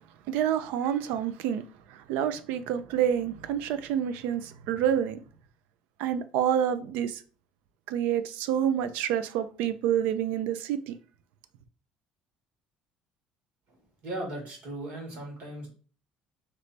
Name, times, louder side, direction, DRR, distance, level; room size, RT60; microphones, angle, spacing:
voice 1, 0.3-1.6 1.9-5.2 6.0-7.2 7.9-11.0, right 9 dB, 85° right, 0.4 m, -28 dB
voice 2, 13.7-15.7, right 1 dB, 55° right, 1.8 m, -38 dB
3.2 x 3.1 x 3.9 m
cardioid pair, 180°, 3 cm